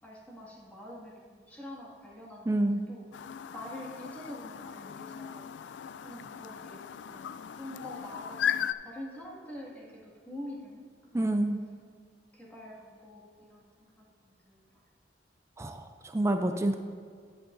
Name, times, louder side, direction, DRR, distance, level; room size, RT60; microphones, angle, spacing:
voice 1, 0.0-3.1 3.5-5.5 6.0-10.9 11.1-11.4 12.3-13.2 13.5-14.7, left 1 dB, 10° left, -5 dB, 1.9 m, -46 dB
voice 2, 2.5-2.8 11.1-11.6 15.6-16.8, right 1 dB, 15° right, 6 dB, 0.4 m, -28 dB
Chirp tweet, 3.1-8.7, left 9 dB, 85° left, 0.3 m, -37 dB
11.0 x 9.7 x 2.6 m, 2.1 s
head